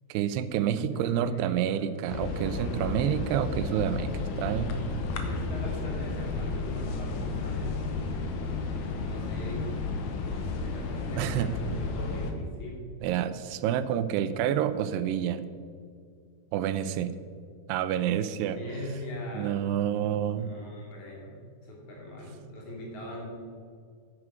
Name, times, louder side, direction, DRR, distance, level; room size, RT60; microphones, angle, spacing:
voice 1, 0.1-4.1 4.4-4.9 11.2-11.5 13.0-15.5 16.5-17.2 17.7-18.6 19.3-20.5, right 10 dB, 85° right, 13 dB, 2.6 m, -28 dB
voice 2, 0.9-1.8 5.0-7.7 9.0-9.7 10.3-12.8 18.4-19.6 20.4-23.3, left 1 dB, 50° left, -3 dB, 3.5 m, -41 dB
sound 1, 2.1-12.3, left 3 dB, 75° left, 1.7 m, -32 dB
9.8 x 9.8 x 4.8 m, 2.2 s
omnidirectional pair, 4.8 m